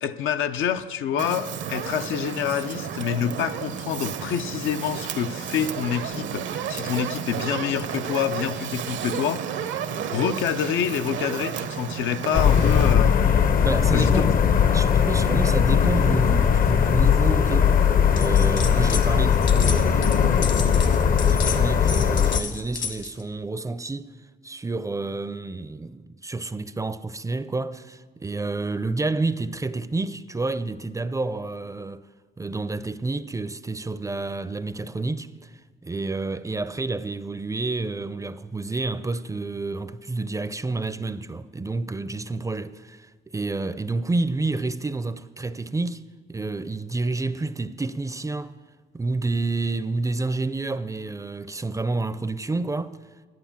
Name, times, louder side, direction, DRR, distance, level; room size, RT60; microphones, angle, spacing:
voice 1, 0.0-9.4 9.9-13.2 13.9-14.3, left 9 dB, 85° left, 0.6 m, -27 dB
Fire, 1.2-12.9, right 8 dB, 70° right, 0.8 m, -32 dB
sound 1, 12.3-22.4, left 7 dB, 45° left, 0.6 m, -19 dB
voice 2, 13.6-14.3 14.7-17.8 18.1-24.1 24.4-32.1 32.4-35.5 35.8-46.0 46.3-48.5 48.9-53.0, right 3 dB, 15° right, 0.4 m, -29 dB
sound 2, 18.2-19.1 19.3-23.2, left 6 dB, 65° left, 1.5 m, -32 dB
11.5 x 9.4 x 7.2 m
cardioid pair, 90°, 20 cm